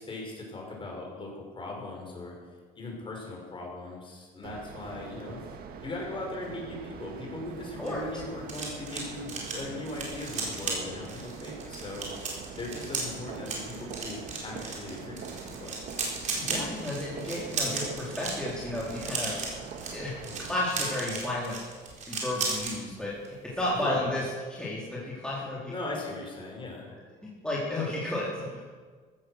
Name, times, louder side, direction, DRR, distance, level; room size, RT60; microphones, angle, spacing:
voice 1, 0.0-2.3 2.7-5.4 5.8-12.1 12.5-15.8 23.7-24.1 25.7-26.9, left 2 dB, 30° left, -1 dB, 5.8 m, -39 dB
sound 1, 4.4-20.6, right 5 dB, 65° right, 1.8 m, -43 dB
sound 2, 7.6-22.8 23.1-23.4 23.6-23.9, right 4 dB, 45° right, 4.4 m, -36 dB
voice 2, 16.1-19.4 19.9-21.6 22.1-24.3 24.6-25.7 27.2-28.6, left 1 dB, 5° left, -7 dB, 3.9 m, -32 dB
15.0 x 13.0 x 6.5 m, 1.5 s
cardioid pair, 110°, 17 cm